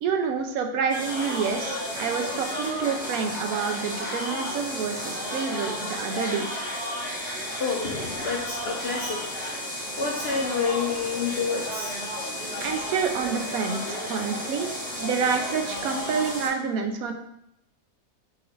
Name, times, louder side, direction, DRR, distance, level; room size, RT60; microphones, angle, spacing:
voice 1, 0.0-6.5 12.6-14.7 15.0-17.1, right 6 dB, 75° right, 4 dB, 1.0 m, -28 dB
sound 1, 0.9-16.5, equal, 10° right, 0.6 m, -32 dB
voice 2, 7.6-9.2 10.0-11.9, left 5 dB, 65° left, -1 dB, 0.6 m, -28 dB
6.0 x 2.4 x 3.1 m, 0.78 s
omnidirectional pair, 1.6 m